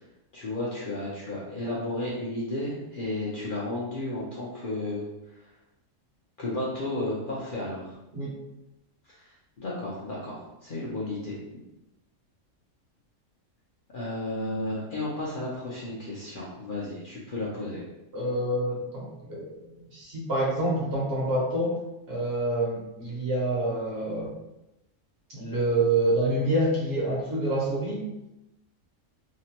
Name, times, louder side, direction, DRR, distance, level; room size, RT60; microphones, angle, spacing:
voice 1, 0.3-5.0 5.4-5.5 6.4-8.0 9.0-9.2 9.6-11.4 13.9-17.8, left 1 dB, 50° left, -7 dB, 0.7 m, -33 dB
voice 2, 18.1-21.8 22.1-24.3 25.3-28.0, right 1 dB, 55° right, -4 dB, 1.0 m, -27 dB
2.9 x 2.1 x 2.8 m, 0.92 s
omnidirectional pair, 1.4 m